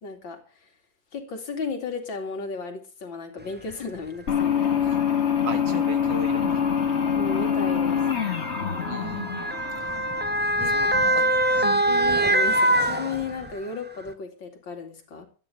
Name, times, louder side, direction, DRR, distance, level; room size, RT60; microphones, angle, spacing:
voice 1, 0.0-0.7 1.1-5.0 7.1-8.0 10.6-10.8 11.1-11.3 11.9-15.3, left 5 dB, 80° left, 4 dB, 3.1 m, -34 dB
Motor vehicle (road) / Siren, 3.7-3.8 4.8-5.0 6.0-13.6 14.1-14.2, right 1 dB, 15° right, 0.4 m, -24 dB
sound 1, 4.3-10.6, left 8 dB, 40° left, 1.4 m, -25 dB
voice 2, 5.4-6.6 8.9-9.5 10.7-11.2 11.5-11.8, right 7 dB, 70° right, 9 dB, 2.3 m, -36 dB
12.5 x 9.8 x 6.6 m, 0.37 s
omnidirectional pair, 2.1 m